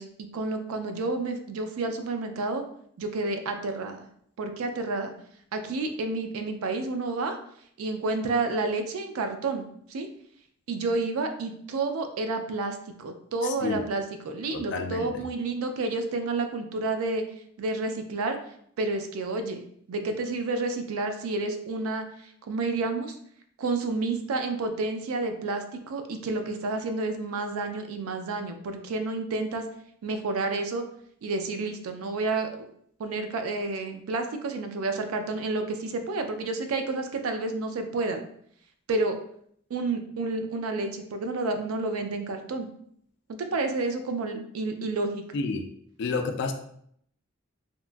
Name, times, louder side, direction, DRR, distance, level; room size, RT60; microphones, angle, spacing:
voice 1, 0.0-2.6 3.0-4.1 4.4-5.1 5.5-7.4 7.8-10.1 10.7-17.2 17.6-18.4 18.8-19.6 19.9-23.1 23.6-29.6 30.0-30.8 31.2-32.7 33.0-38.3 38.9-39.2 39.7-42.7 43.3-45.2, right 3 dB, 90° right, 7 dB, 0.4 m, -30 dB
voice 2, 13.4-13.8 14.5-15.2 45.3-45.7 46.0-46.5, left 4 dB, 55° left, 6 dB, 0.3 m, -30 dB
2.8 x 2.2 x 2.4 m, 0.68 s
head